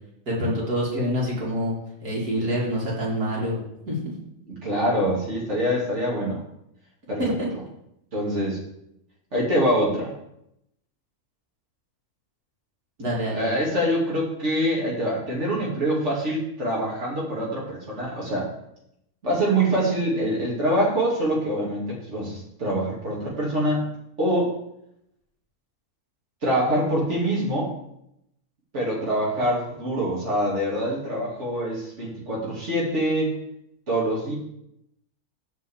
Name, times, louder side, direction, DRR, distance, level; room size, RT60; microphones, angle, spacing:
voice 1, 0.3-1.7 2.0-4.1 7.2-7.3 13.0-13.4, equal, 75° right, -5 dB, 3.1 m, -26 dB
voice 2, 4.5-6.4 7.1-7.2 7.5-7.6 8.1-8.6 9.3-10.1 13.3-18.5 19.2-23.8 24.2-24.5 26.4-27.7 28.7-33.3 33.9-34.3, equal, 50° right, -5 dB, 2.7 m, -25 dB
8.0 x 4.9 x 7.3 m, 0.79 s
omnidirectional pair, 1.6 m